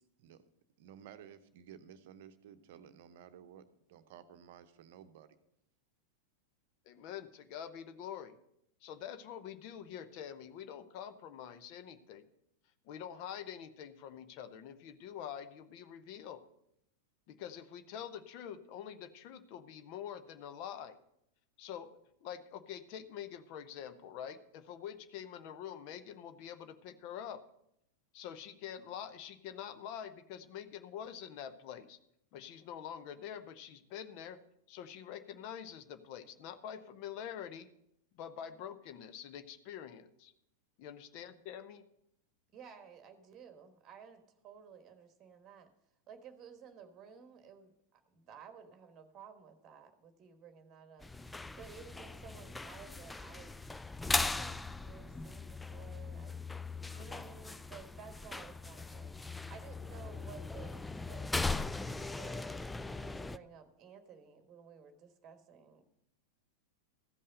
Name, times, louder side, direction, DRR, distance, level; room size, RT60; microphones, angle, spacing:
voice 1, 0.8-5.4, right 9 dB, 50° right, 11 dB, 0.8 m, -54 dB
voice 2, 6.9-8.4 8.8-12.3 12.8-16.4 17.3-21.0 21.6-21.9 22.2-27.4 28.1-32.0 32.3-34.4 34.7-37.7 38.1-40.3 40.8-41.8 56.9-57.2, left 9 dB, 45° left, 11 dB, 0.8 m, -46 dB
voice 3, 42.5-45.7 46.1-53.7 54.0-56.4 56.9-59.2 59.5-61.8 62.2-62.6 62.9-65.9, right 7 dB, 30° right, 8 dB, 1.3 m, -54 dB
sound 1, 51.0-63.4, left 3 dB, 5° left, 0.3 m, -39 dB
14.5 x 5.5 x 6.4 m, 0.78 s
figure-of-eight pair, 90°, 0 cm